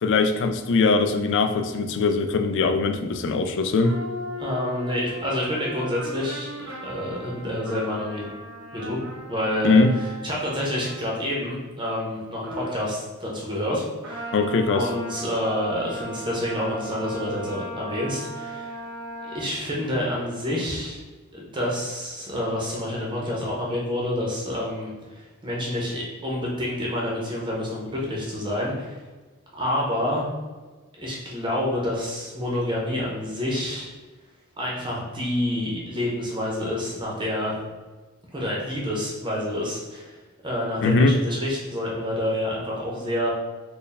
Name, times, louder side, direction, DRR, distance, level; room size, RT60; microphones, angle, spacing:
voice 1, 0.0-4.0 9.6-9.9 14.3-14.9 40.8-41.2, left 3 dB, 60° left, 8 dB, 0.3 m, -21 dB
sound 1, 3.8-11.3 12.4-12.8 14.0-19.4, right 1 dB, 85° right, 1.0 m, -37 dB
voice 2, 4.4-8.3 8.7-9.0 9.3-9.8 10.2-14.3 14.7-18.8 19.2-21.0 21.3-29.0 29.5-30.3 31.0-33.9 34.6-37.6 38.3-40.2 40.4-43.3, left 1 dB, 20° right, -4 dB, 0.7 m, -28 dB
4.4 x 2.2 x 3.3 m, 1.3 s
head